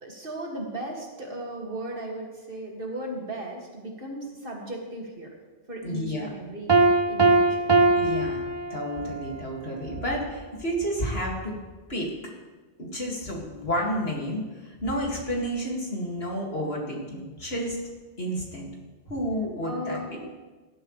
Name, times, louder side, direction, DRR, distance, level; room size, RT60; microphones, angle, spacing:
voice 1, 0.0-5.3 5.7-6.7 7.1-7.7 19.6-20.2, right 1 dB, 55° right, -1 dB, 2.5 m, -36 dB
voice 2, 5.8-6.3 8.0-8.4 8.7-11.6 11.9-12.1 12.8-17.8 18.2-18.7 19.1-20.2, equal, 60° left, -2 dB, 2.6 m, -30 dB
Piano, 6.7-9.2, right 3 dB, 30° right, 0.6 m, -21 dB
17.0 x 12.5 x 3.3 m, 1.3 s
omnidirectional pair, 1.1 m